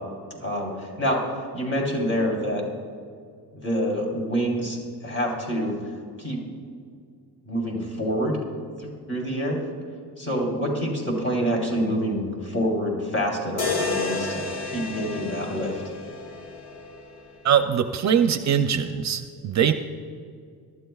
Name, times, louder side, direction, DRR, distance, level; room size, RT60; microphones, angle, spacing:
voice 1, 0.4-1.2 1.5-2.6 3.5-5.8 6.2-6.4 7.5-8.4 8.8-9.6 10.2-15.8, equal, 30° left, -1 dB, 3.7 m, -27 dB
sound 1, 13.6-17.6, left 4 dB, 80° left, 1.8 m, -31 dB
voice 2, 17.4-19.7, right 8 dB, 45° right, 8 dB, 0.6 m, -22 dB
24.5 x 12.5 x 2.4 m, 2.3 s
cardioid pair, 145°, 38 cm